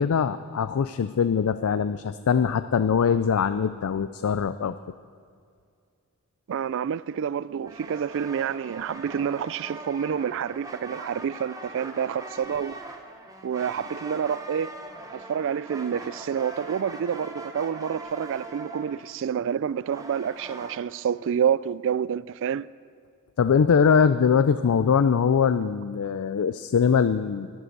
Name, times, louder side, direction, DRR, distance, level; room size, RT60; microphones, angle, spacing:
voice 1, 0.0-4.8 23.4-27.5, left 6 dB, 70° left, 0.4 m, -22 dB
voice 2, 6.5-12.8 13.4-14.7 15.1-22.7, right 8 dB, 60° right, 0.3 m, -28 dB
sound 1, 7.6-20.8, right 2 dB, 15° right, 1.1 m, -41 dB
12.0 x 11.0 x 7.8 m
head